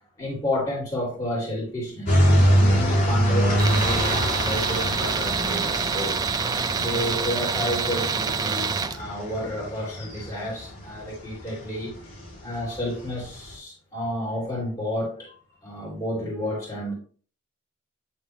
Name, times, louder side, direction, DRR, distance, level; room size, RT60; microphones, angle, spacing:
voice 1, 0.2-6.2 6.8-11.9 12.4-16.9, left 1 dB, 15° left, -6 dB, 2.8 m, -31 dB
sound 1, 2.1-13.5, equal, 40° left, 3.8 m, -25 dB
Tools, 3.6-9.0, right 5 dB, 20° right, 0.3 m, -26 dB
10.5 x 3.5 x 3.1 m, 0.41 s
head